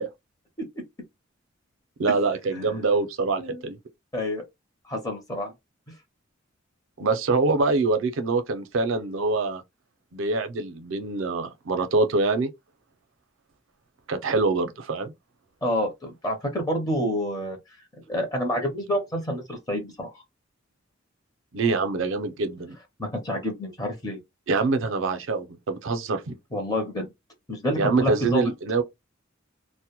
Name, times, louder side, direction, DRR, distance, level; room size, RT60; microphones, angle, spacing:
voice 1, 2.0-3.8 7.0-9.6 10.1-12.5 14.1-15.1 21.5-22.8 24.5-26.3 27.8-28.8, right 3 dB, 70° right, 0.5 m, -25 dB
voice 2, 4.1-4.4 4.9-5.5 15.6-17.6 18.1-20.1 23.0-24.2 26.5-27.1 27.5-28.5, equal, 20° left, 0.6 m, -28 dB
2.1 x 2.0 x 2.9 m
head